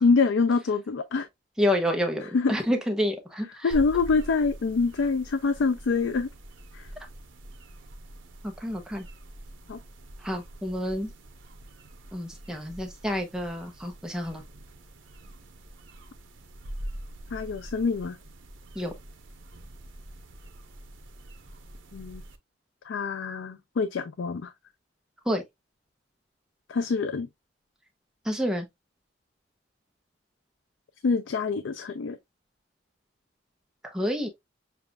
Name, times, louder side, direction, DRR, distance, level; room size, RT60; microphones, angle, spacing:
voice 1, 0.0-1.3 2.3-2.6 3.6-6.3 6.7-6.9 9.7-9.8 17.3-18.2 21.9-22.2 22.8-24.5 26.7-27.3 31.0-32.2, left 4 dB, 80° left, 0.4 m, -25 dB
voice 2, 1.6-3.8 8.4-9.0 10.2-11.1 12.1-14.4 18.7-18.9 25.2-25.4 28.2-28.7 33.8-34.3, equal, 5° right, 0.7 m, -29 dB
sound 1, 3.7-22.4, right 1 dB, 85° right, 0.8 m, -44 dB
6.8 x 2.4 x 2.3 m
head